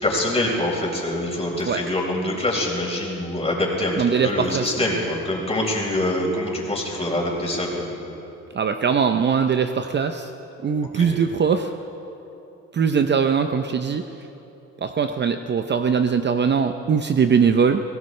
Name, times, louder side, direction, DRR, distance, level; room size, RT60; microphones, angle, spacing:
voice 1, 0.0-4.0 4.2-8.0 10.9-11.1, left 1 dB, 20° left, -2 dB, 4.2 m, -25 dB
voice 2, 4.0-4.7 8.5-10.3 10.6-11.7 12.7-14.0 14.8-17.8, right 6 dB, 35° right, 7 dB, 0.6 m, -21 dB
23.0 x 16.5 x 3.2 m, 3.0 s
cardioid pair, 90°, 30 cm